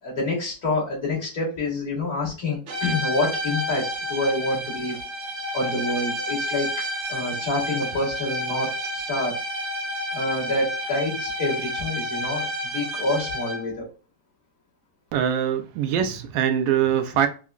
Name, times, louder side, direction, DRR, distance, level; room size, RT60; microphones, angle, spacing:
voice 1, 0.0-5.0 5.5-9.4 10.1-13.9, left 2 dB, 50° left, 1.8 m, -27 dB
sound 1, 2.7-13.8, equal, 60° right, 0.9 m, -30 dB
voice 2, 15.1-17.3, right 9 dB, 85° right, 1.3 m, -23 dB
5.5 x 2.0 x 2.3 m
omnidirectional pair, 2.0 m